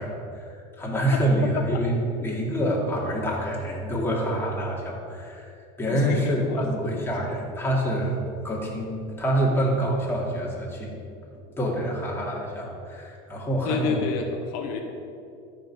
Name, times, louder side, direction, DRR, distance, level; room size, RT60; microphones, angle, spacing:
voice 1, 0.0-10.9 11.6-14.0, right 1 dB, 10° left, -3 dB, 2.6 m, -27 dB
voice 2, 5.9-6.7 13.6-14.8, left 6 dB, 80° left, 4 dB, 1.1 m, -29 dB
12.5 x 5.4 x 6.2 m, 2.5 s
supercardioid pair, 115°, 20 cm